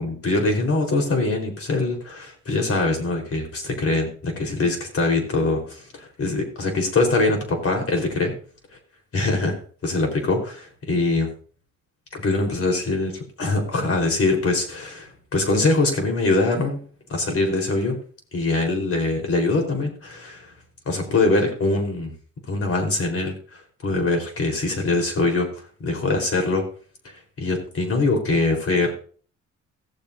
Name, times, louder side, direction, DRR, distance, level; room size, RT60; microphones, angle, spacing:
voice 1, 0.0-8.3 9.1-9.5 9.8-11.3 12.1-16.8 17.1-18.0 18.3-20.5 20.9-22.1 22.5-23.4 23.8-25.5 25.8-26.6 27.4-28.9, left 2 dB, 50° left, 3 dB, 4.2 m, -23 dB
17.0 x 7.6 x 2.7 m, 0.43 s
cardioid pair, 90°, 30 cm